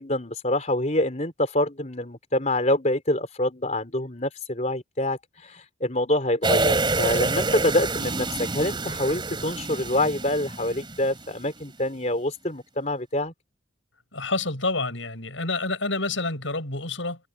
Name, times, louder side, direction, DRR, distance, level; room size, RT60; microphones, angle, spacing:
voice 1, 0.0-13.3, left 1 dB, 35° left, 4.2 m, -26 dB
sound 1, 6.4-11.3 11.6-11.7, right 3 dB, 25° right, 3.2 m, -27 dB
voice 2, 14.1-17.2, left 3 dB, 70° left, 7.8 m, -28 dB
head